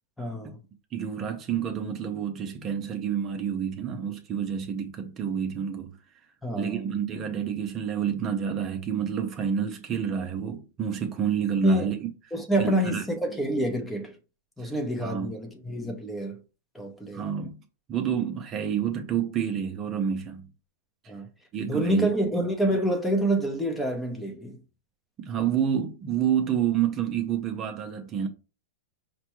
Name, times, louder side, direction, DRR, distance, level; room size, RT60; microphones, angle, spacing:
voice 1, 0.2-0.6 6.4-7.0 11.6-11.9 12.3-14.2 14.6-16.4 16.7-17.3 21.1-21.3 21.7-24.6, right 1 dB, 5° left, 0.7 m, -27 dB
voice 2, 0.9-6.0 6.6-12.1 12.6-13.0 14.6-14.7 15.0-15.3 17.1-17.6 17.9-20.5 21.0-21.1 21.5-22.1 25.2-28.3, right 8 dB, 30° right, 0.6 m, -29 dB
5.1 x 2.2 x 3.0 m
hypercardioid pair, 130°, 0 cm